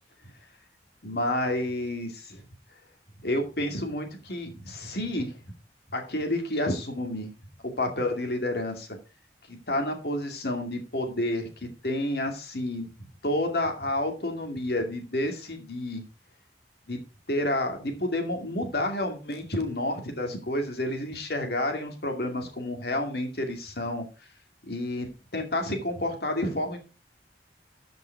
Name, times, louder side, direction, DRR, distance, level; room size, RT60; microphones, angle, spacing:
voice 1, 1.0-2.4 3.2-5.4 5.9-7.3 7.6-8.9 9.5-12.9 13.2-16.0 16.9-17.0 17.3-24.0 24.7-26.8, left 1 dB, 60° left, 4 dB, 2.4 m, -30 dB
14.0 x 5.5 x 4.6 m, 0.32 s
head